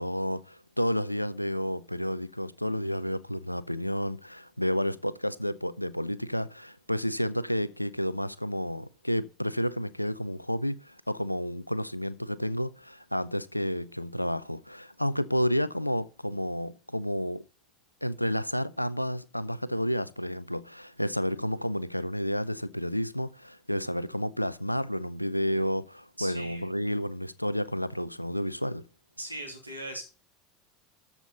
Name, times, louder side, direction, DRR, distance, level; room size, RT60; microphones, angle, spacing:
voice 1, 0.0-17.4 18.0-28.8, equal, 90° left, 0.5 m, -31 dB
voice 2, 26.2-26.6 29.2-30.0, right 1 dB, 90° right, 2.9 m, -38 dB
13.5 x 7.2 x 4.0 m
figure-of-eight pair, 75°, 0 cm